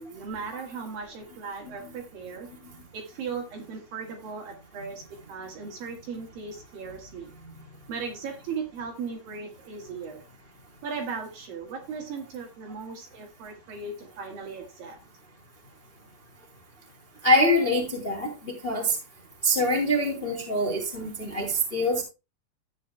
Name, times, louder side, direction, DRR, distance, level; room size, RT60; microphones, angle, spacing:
voice 1, 0.0-2.5 2.9-7.3 7.9-10.2 10.8-15.0, right 5 dB, 65° right, 2 dB, 3.2 m, -37 dB
voice 2, 17.2-19.0 19.4-22.0, equal, 15° left, -1 dB, 2.3 m, -24 dB
13.0 x 9.5 x 2.2 m, 0.27 s
omnidirectional pair, 4.7 m